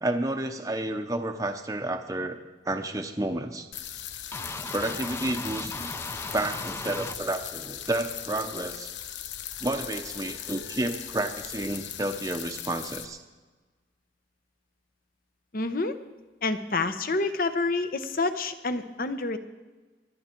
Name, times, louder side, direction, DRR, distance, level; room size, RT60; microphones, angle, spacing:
voice 1, 0.0-2.4 2.7-3.7 4.7-5.9 6.3-8.9 9.6-13.2, right 1 dB, 20° right, 5 dB, 0.7 m, -30 dB
sound 1, 3.7-13.1, left 10 dB, 85° left, 0.8 m, -39 dB
sound 2, 4.3-7.2, left 2 dB, 15° left, 0.5 m, -37 dB
voice 2, 15.5-16.0 16.4-19.4, left 3 dB, 50° left, 10 dB, 0.9 m, -28 dB
23.0 x 9.6 x 4.5 m, 1.3 s
head